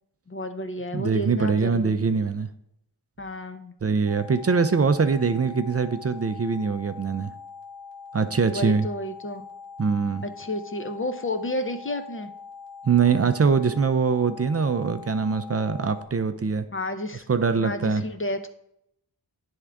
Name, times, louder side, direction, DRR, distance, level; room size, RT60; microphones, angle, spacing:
voice 1, 0.3-1.9 3.2-3.7 8.4-9.4 10.2-12.3 16.7-18.5, left 1 dB, 30° left, 8 dB, 0.6 m, -31 dB
voice 2, 0.9-2.5 3.8-7.3 8.1-8.9 9.8-10.2 12.8-16.6 17.3-18.0, right 5 dB, 35° right, 10 dB, 0.4 m, -23 dB
sound 1, 4.1-16.1, left 5 dB, 80° left, 1.0 m, -43 dB
9.8 x 3.6 x 3.4 m, 0.79 s
wide cardioid pair, 45°, 43 cm